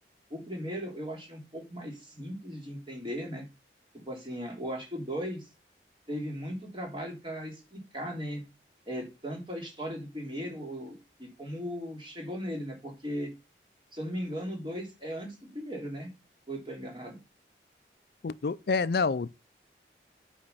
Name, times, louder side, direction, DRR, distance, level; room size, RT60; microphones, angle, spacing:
voice 1, 0.3-3.5 3.9-5.5 6.1-8.4 8.9-13.3 13.9-16.1 16.5-17.2, equal, 30° right, 3.4 m, -37 dB
voice 2, 18.2-19.3, left 4 dB, 60° left, 0.4 m, -27 dB
8.7 x 5.1 x 6.7 m
head